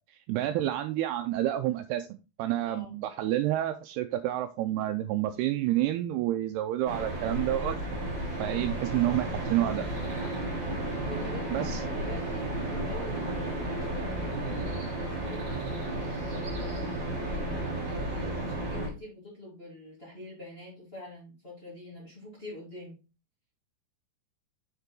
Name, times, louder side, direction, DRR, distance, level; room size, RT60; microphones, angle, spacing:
voice 1, 0.3-2.1 2.4-7.8 8.4-9.9 11.5-11.8, right 13 dB, 80° right, 2.4 m, -29 dB
voice 2, 2.7-3.0 11.1-23.0, left 1 dB, 15° left, 2.5 m, -46 dB
sound 1, 6.9-18.9, right 1 dB, 35° right, 2.3 m, -33 dB
6.8 x 5.5 x 3.8 m
omnidirectional pair, 4.9 m